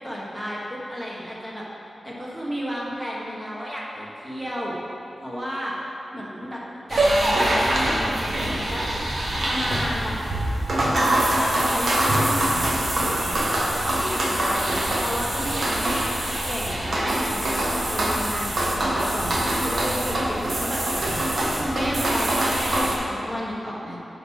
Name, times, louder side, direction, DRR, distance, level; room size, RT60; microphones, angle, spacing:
voice 1, 0.0-1.6 2.0-4.8 5.2-5.7 6.1-6.6 6.9-8.9 9.4-10.2 10.7-10.9 11.5-16.0 16.5-21.1 21.4-24.0, equal, 5° right, -5 dB, 1.3 m, -32 dB
sound 1, 6.9-23.0, right 1 dB, 50° right, 1.2 m, -24 dB
9.0 x 4.5 x 5.6 m, 2.7 s
wide cardioid pair, 165°, 0 cm